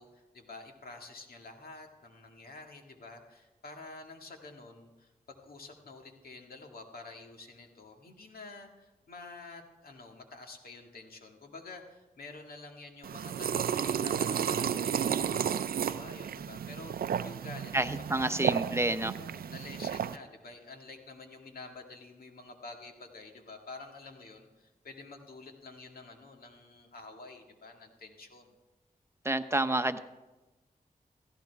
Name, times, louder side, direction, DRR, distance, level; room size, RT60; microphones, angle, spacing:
voice 1, 0.0-18.6 19.0-28.6, left 3 dB, 75° left, 3 dB, 2.0 m, -49 dB
sound 1, 13.0-20.2, right 8 dB, 75° right, 0.5 m, -32 dB
voice 2, 17.7-19.1 29.2-30.0, right 2 dB, 15° right, 9 dB, 0.9 m, -29 dB
17.0 x 14.5 x 3.5 m, 1.1 s
cardioid pair, 45°, 15 cm